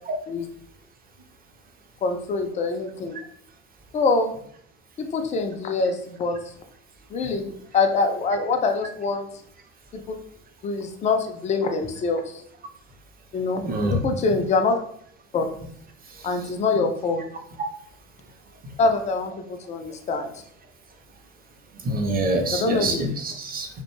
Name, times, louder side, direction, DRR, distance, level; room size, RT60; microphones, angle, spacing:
voice 1, 2.0-3.2 3.9-4.3 5.0-6.4 7.1-9.3 9.9-10.0 10.6-12.4 13.3-13.6 13.9-14.8 15.3-15.5 16.2-17.2 18.8-20.4 22.5-23.0, left 3 dB, 20° left, 5 dB, 0.3 m, -24 dB
voice 2, 13.6-14.0 21.8-23.7, right 1 dB, 25° right, 3 dB, 0.6 m, -25 dB
2.3 x 2.1 x 3.0 m, 0.64 s
hypercardioid pair, 80°, 36 cm